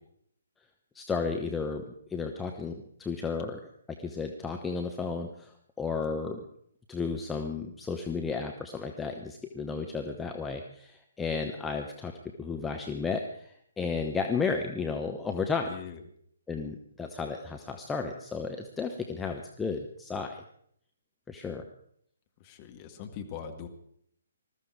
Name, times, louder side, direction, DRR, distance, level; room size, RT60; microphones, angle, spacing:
voice 1, 0.9-1.8 2.1-3.6 4.0-6.4 6.9-12.1 12.4-15.7 16.5-20.4 21.3-21.6, left 4 dB, 10° left, 3 dB, 1.0 m, -33 dB
voice 2, 15.7-16.0 22.4-23.7, left 8 dB, 25° left, 5 dB, 2.0 m, -41 dB
20.5 x 14.0 x 4.8 m, 0.68 s
figure-of-eight pair, 130°, 0 cm